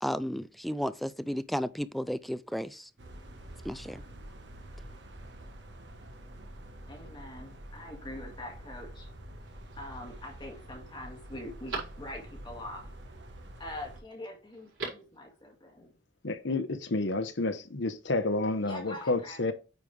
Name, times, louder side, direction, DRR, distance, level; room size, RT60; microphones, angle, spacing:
voice 1, 0.0-2.9 3.6-4.0, equal, ahead, 0.3 m, -33 dB
sound 1, 3.0-14.0, right 1 dB, 65° right, 1.2 m, -47 dB
voice 2, 6.9-9.1 9.8-12.9 13.6-15.9 18.6-19.4, left 1 dB, 25° left, 1.9 m, -44 dB
Telephone, 9.4-10.0 10.5-10.6 11.0-12.5 14.5-15.2 15.5-15.6, right 3 dB, 85° right, 4.6 m, -42 dB
voice 3, 16.2-19.5, left 2 dB, 70° left, 1.0 m, -30 dB
9.0 x 5.3 x 3.3 m
head